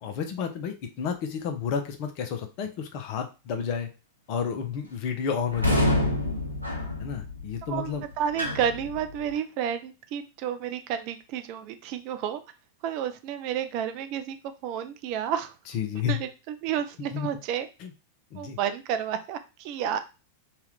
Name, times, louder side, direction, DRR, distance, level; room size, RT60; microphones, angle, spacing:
voice 1, 0.0-3.9 4.3-5.9 7.0-8.0 15.7-16.2 17.1-17.3 17.8-17.9 18.3-18.6, left 7 dB, 45° left, 5 dB, 0.6 m, -31 dB
sound 1, 5.5-9.4, left 1 dB, 90° right, 0.7 m, -28 dB
voice 2, 7.7-12.4 12.8-14.4 14.6-15.5 16.1-17.7 18.4-20.0, right 9 dB, 45° right, 8 dB, 0.4 m, -31 dB
2.8 x 2.4 x 3.2 m, 0.29 s
figure-of-eight pair, 90°, 0 cm